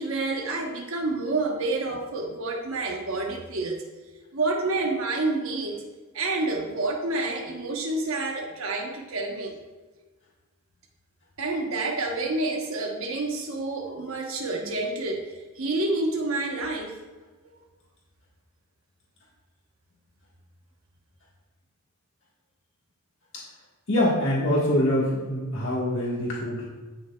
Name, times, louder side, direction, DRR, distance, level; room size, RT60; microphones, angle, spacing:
voice 1, 0.0-3.8 4.3-5.8 6.1-9.6 11.4-17.0, right 2 dB, 60° right, 1 dB, 1.1 m, -28 dB
voice 2, 23.9-26.6, left 1 dB, 55° left, -5 dB, 1.5 m, -24 dB
15.5 x 6.1 x 2.3 m, 1.3 s
head